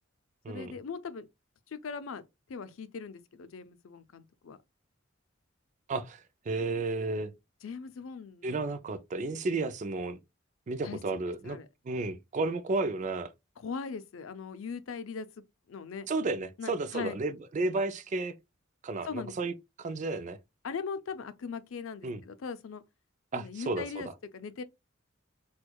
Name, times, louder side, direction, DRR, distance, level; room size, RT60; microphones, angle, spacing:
voice 1, 0.5-1.3 1.7-2.2 2.5-4.6 7.6-8.6 10.8-11.0 11.4-11.7 13.6-15.3 15.7-16.1 16.6-17.2 19.0-19.3 20.6-22.8 23.3-24.6, left 5 dB, 90° left, 0.5 m, -40 dB
voice 2, 5.9-6.2 6.5-7.3 8.4-10.2 10.7-11.6 11.9-13.3 16.1-18.3 18.8-19.5 19.8-20.4 22.0-22.2 23.3-23.8, right 3 dB, 40° right, 0.4 m, -32 dB
4.4 x 2.3 x 2.2 m
head